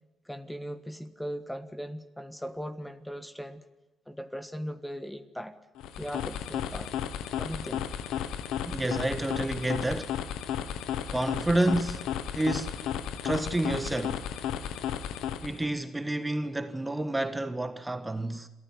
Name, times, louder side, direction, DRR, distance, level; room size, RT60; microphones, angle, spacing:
voice 1, 0.2-3.7 4.1-5.5 6.0-6.9 7.4-7.8, equal, 5° left, 1.5 m, -38 dB
sound 1, 5.8-15.7, left 9 dB, 90° left, 1.4 m, -34 dB
voice 2, 8.7-10.2 11.1-12.9 13.2-14.3 15.4-18.5, right 1 dB, 10° right, 1.5 m, -29 dB
27.0 x 14.5 x 9.5 m
cardioid pair, 90°, 0 cm